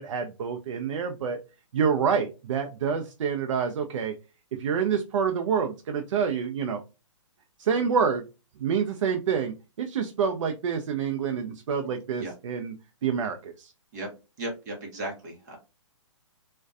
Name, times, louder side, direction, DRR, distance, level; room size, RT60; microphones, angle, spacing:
voice 1, 0.0-1.4 1.7-4.1 4.6-6.8 7.6-8.2 8.6-12.7 13.0-13.7, right 6 dB, 70° right, 5 dB, 0.4 m, -27 dB
voice 2, 14.4-15.6, right 1 dB, 35° right, 1 dB, 0.7 m, -35 dB
2.5 x 2.1 x 2.3 m, 0.29 s
hypercardioid pair, 165°, 16 cm